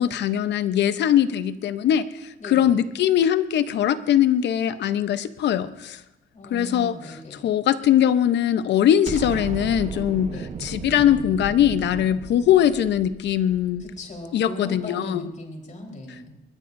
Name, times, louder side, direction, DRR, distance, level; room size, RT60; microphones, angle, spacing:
voice 1, 0.0-2.1 2.4-6.0 6.5-10.3 10.6-13.8 14.3-15.3, left 10 dB, 70° left, 12 dB, 0.9 m, -21 dB
voice 2, 2.4-2.8 6.3-7.5 10.3-10.5 13.8-16.4, left 1 dB, 40° left, 1 dB, 4.2 m, -37 dB
Explosion, 9.1-14.2, right 5 dB, 40° right, 1.0 m, -35 dB
22.0 x 19.5 x 2.7 m, 0.96 s
cardioid pair, 95°, 19 cm